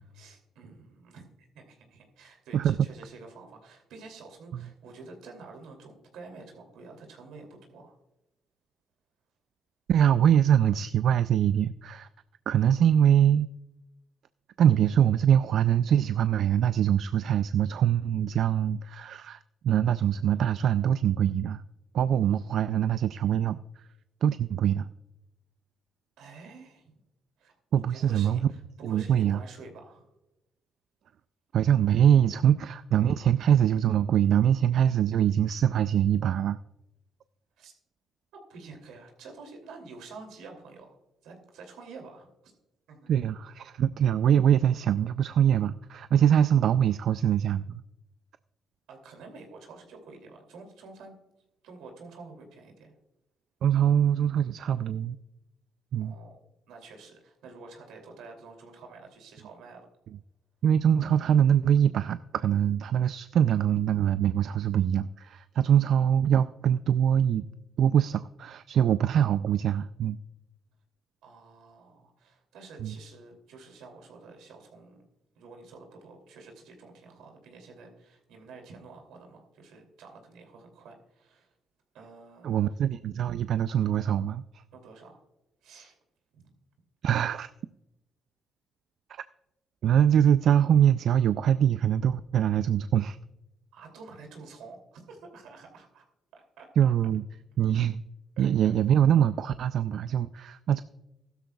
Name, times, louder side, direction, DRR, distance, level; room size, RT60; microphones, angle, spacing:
voice 1, 0.1-8.0 26.2-26.9 27.4-27.5 27.9-30.1 37.6-37.7 38.3-41.0 41.2-42.5 42.9-43.3 48.9-51.1 51.6-52.9 56.0-56.4 56.7-59.9 71.2-75.0 75.4-81.5 81.9-82.6 84.7-85.2 85.6-86.0 86.3-86.5 93.7-96.0 96.6-96.9 98.4-98.7, right 4 dB, 90° right, 3 dB, 2.7 m, -49 dB
voice 2, 9.9-12.1 12.5-13.5 14.6-21.6 21.9-23.6 24.2-24.9 27.7-28.5 28.8-29.4 31.5-36.6 43.1-47.8 53.6-55.2 55.9-56.1 60.6-67.5 67.8-70.2 72.8-73.0 82.4-84.6 87.0-87.5 89.1-89.2 89.8-93.2 96.8-97.2 97.6-98.0 98.4-100.8, right 9 dB, 70° right, 13 dB, 0.3 m, -23 dB
15.5 x 12.5 x 2.3 m, 0.93 s
cardioid pair, 90°, 0 cm